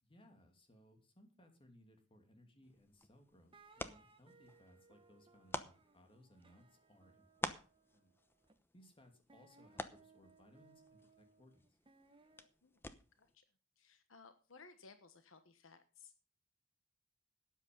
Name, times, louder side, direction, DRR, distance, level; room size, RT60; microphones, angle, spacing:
voice 1, 0.0-7.5 7.9-8.1 8.7-11.8, equal, 25° left, 5 dB, 2.7 m, -65 dB
sound 1, 2.6-13.3, left 2 dB, 10° left, 0.8 m, -50 dB
sound 2, 3.5-8.5 9.3-12.5, right 3 dB, 25° right, 1.4 m, -67 dB
voice 2, 13.8-16.1, left 4 dB, 70° left, 9 dB, 1.2 m, -60 dB
13.0 x 9.2 x 5.3 m, 0.35 s
head